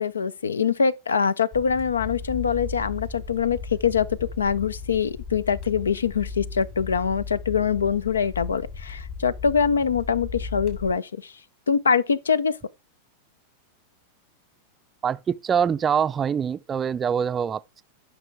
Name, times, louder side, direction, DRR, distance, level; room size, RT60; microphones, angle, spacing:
voice 1, 0.0-11.3 11.7-12.5, left 6 dB, 70° left, 0.5 m, -24 dB
sound 1, 1.5-10.9, left 5 dB, 40° left, 2.9 m, -36 dB
voice 2, 15.0-17.8, right 7 dB, 20° right, 0.5 m, -24 dB
12.0 x 6.0 x 3.5 m
figure-of-eight pair, 90°, 0 cm